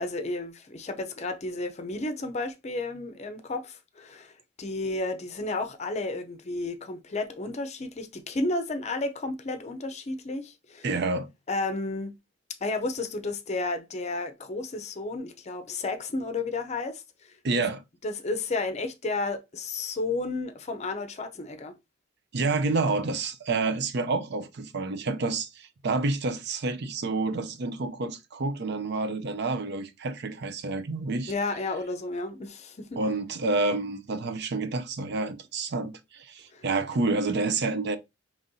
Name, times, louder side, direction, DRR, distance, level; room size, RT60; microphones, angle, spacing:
voice 1, 0.0-4.3 4.6-10.9 11.5-12.2 12.6-17.3 18.0-21.8 31.3-33.0 36.5-36.6, left 2 dB, 35° left, 0.5 m, -32 dB
voice 2, 10.8-11.3 17.4-17.8 22.3-31.3 33.0-38.0, right 3 dB, 60° right, 0.5 m, -29 dB
5.2 x 3.0 x 2.6 m
head